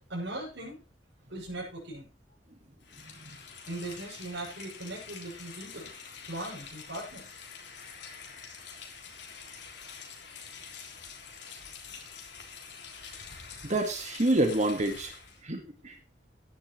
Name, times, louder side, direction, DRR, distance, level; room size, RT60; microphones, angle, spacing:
voice 1, 0.1-0.8 1.3-2.1 3.7-5.9 6.2-7.3, right 1 dB, 85° right, -4 dB, 7.3 m, -39 dB
Rain, 2.8-15.4, left 6 dB, 80° left, 3.5 m, -46 dB
voice 2, 13.6-15.1 15.4-16.0, right 1 dB, 40° right, 5 dB, 1.7 m, -28 dB
15.5 x 11.0 x 3.2 m, 0.30 s
head